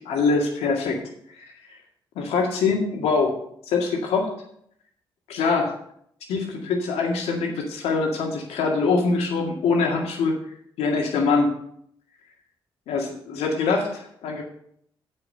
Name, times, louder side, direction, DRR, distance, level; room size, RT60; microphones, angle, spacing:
voice 1, 0.1-1.0 1.4-1.5 2.2-3.3 3.7-4.3 5.3-5.7 6.3-10.3 10.8-11.5 12.9-14.4, left 4 dB, 85° left, 1 dB, 2.0 m, -23 dB
7.6 x 5.9 x 7.9 m, 0.70 s
supercardioid pair, 50°, 10 cm